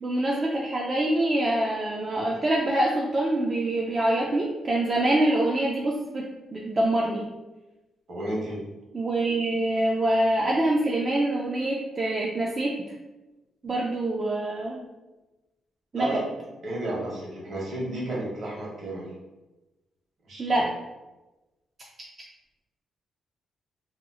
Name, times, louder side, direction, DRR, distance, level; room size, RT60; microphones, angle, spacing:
voice 1, 0.0-6.2 6.5-7.3 8.9-12.7 13.6-14.8 15.9-16.2 20.4-20.7, right 1 dB, 35° right, -2 dB, 0.4 m, -25 dB
voice 2, 8.1-8.6 15.9-16.2 16.6-19.1 20.3-20.6, right 1 dB, 60° right, -4 dB, 1.3 m, -32 dB
2.8 x 2.0 x 3.6 m, 1.1 s
cardioid pair, 85°, 0 cm